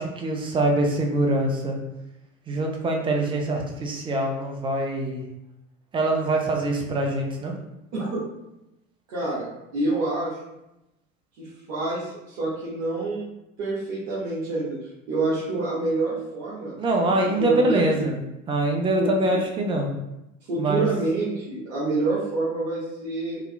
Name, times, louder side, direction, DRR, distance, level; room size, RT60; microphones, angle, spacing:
voice 1, 0.0-1.8 2.5-5.2 5.9-7.5 16.8-19.9 20.6-20.9, right 1 dB, 15° right, 1 dB, 0.4 m, -24 dB
voice 2, 9.1-9.5 9.7-10.3 11.4-13.3 13.6-14.8 15.1-16.7 17.4-18.1 19.0-19.4 20.5-23.4, right 2 dB, 60° right, -9 dB, 1.2 m, -27 dB
3.7 x 2.7 x 2.2 m, 0.90 s
hypercardioid pair, 80°, 42 cm